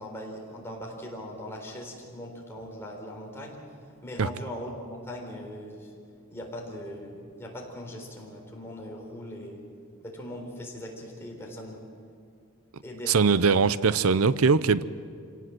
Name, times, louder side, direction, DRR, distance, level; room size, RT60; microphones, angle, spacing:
voice 1, 0.0-3.6 4.0-5.9 6.3-9.6 10.0-11.9 12.8-13.5, left 1 dB, 10° left, -1 dB, 3.9 m, -40 dB
voice 2, 13.1-14.8, right 5 dB, 85° right, 16 dB, 0.7 m, -21 dB
26.0 x 17.5 x 7.7 m, 2.3 s
head